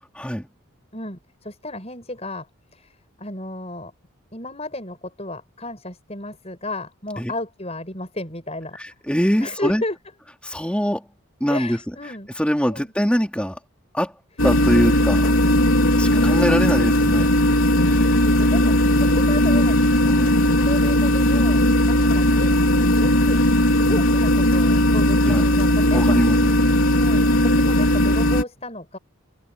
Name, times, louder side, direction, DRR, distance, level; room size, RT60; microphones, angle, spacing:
voice 1, 0.1-0.5 7.2-7.3 8.8-9.8 10.4-11.1 11.4-11.9 12.4-13.6 13.9-14.2 14.4-15.2 15.9-17.3 17.9-18.0 20.0-20.6 25.2-25.4 25.9-26.5, equal, 5° left, 4.5 m, -23 dB
voice 2, 0.9-2.5 2.7-3.9 4.3-8.8 9.4-10.0 11.5-12.3 12.7-12.9 14.8-16.8 17.7-20.0 20.4-21.6 21.9-23.4 23.7-26.4 26.9-29.0, left 1 dB, 30° left, 7.8 m, -33 dB
sound 1, 14.4-28.4, left 1 dB, 80° left, 3.5 m, -17 dB
open air
head